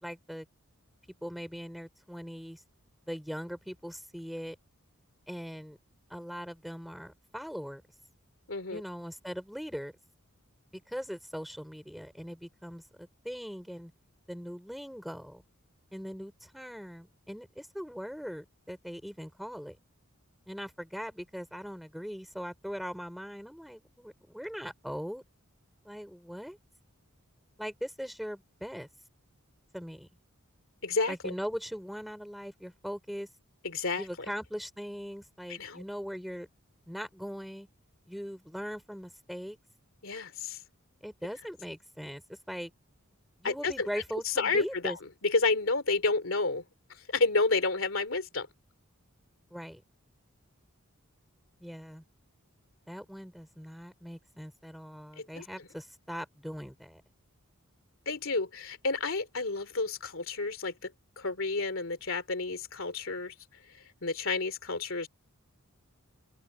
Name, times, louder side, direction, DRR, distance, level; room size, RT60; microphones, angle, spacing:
voice 1, 0.0-0.5 1.2-2.6 3.1-4.6 5.3-5.8 6.1-7.8 8.7-9.9 10.7-13.9 14.3-15.4 15.9-19.8 20.5-25.2 25.8-26.6 27.6-28.9 29.7-30.1 31.1-33.3 34.0-36.5 36.9-37.7 38.1-39.6 41.0-42.7 43.4-45.0 49.5-49.8 51.6-52.0 52.9-57.0, equal, ahead, 3.9 m, -40 dB
voice 2, 8.5-8.8 30.8-31.3 33.6-34.1 35.5-35.8 40.0-40.6 43.4-43.9 44.2-45.0 45.2-46.6 47.1-48.5 55.2-55.4 58.1-60.9 61.2-63.3 64.0-65.1, left 3 dB, 65° left, 3.0 m, -30 dB
open air
head